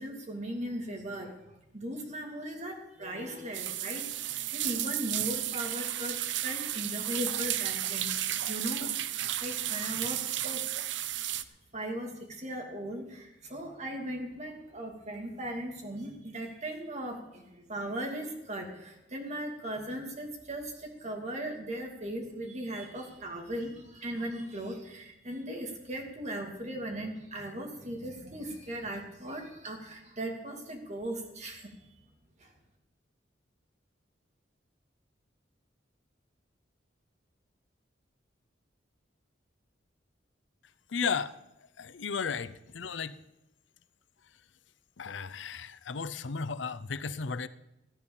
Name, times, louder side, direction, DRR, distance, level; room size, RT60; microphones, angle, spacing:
voice 1, 0.0-1.4 1.7-8.1 8.5-10.7 11.2-11.3 11.7-31.7 32.4-32.5, right 1 dB, 40° right, 2 dB, 2.6 m, -38 dB
sound 1, 3.5-11.4, right 12 dB, 75° right, 0.6 m, -33 dB
voice 2, 40.9-41.4 41.8-43.2 45.0-47.5, left 5 dB, 85° left, 15 dB, 0.7 m, -34 dB
14.5 x 9.8 x 7.1 m, 0.90 s
head